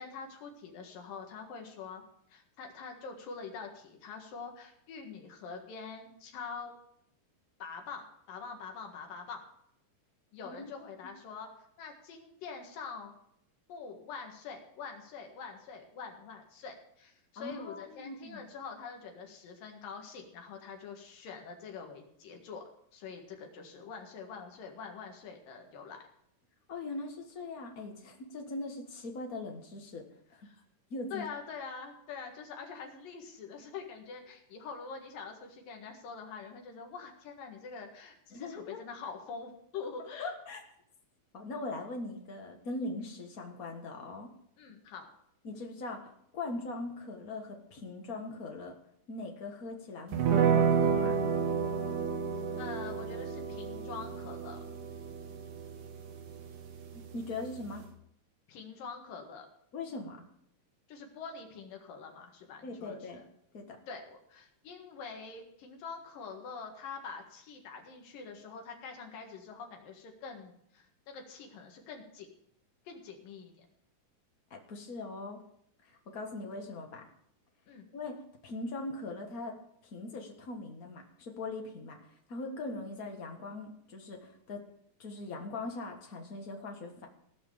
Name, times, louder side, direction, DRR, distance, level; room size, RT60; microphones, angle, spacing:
voice 1, 0.0-2.0 2.3-6.7 7.6-9.4 10.3-11.5 11.8-13.1 13.7-26.0 30.4-30.6 31.1-40.3 44.6-45.1 52.6-54.6 58.5-59.5 60.9-63.2 63.9-72.3 72.9-73.7 77.7-77.9, left 5 dB, 70° left, 3 dB, 3.4 m, -45 dB
voice 2, 17.3-18.4 26.7-30.1 30.3-30.4 30.9-31.2 38.3-38.8 40.2-40.6 41.3-44.3 45.4-48.7 49.1-51.2 56.9-57.8 59.7-60.2 62.6-63.2 63.5-63.8 74.5-75.4 75.8-77.1 77.9-79.6 79.9-82.0 82.3-84.7 85.0-87.1, left 2 dB, 50° left, 2 dB, 1.0 m, -41 dB
sound 1, 50.1-57.9, right 6 dB, 70° right, 2.7 m, -31 dB
17.0 x 5.9 x 7.1 m, 0.72 s
omnidirectional pair, 4.1 m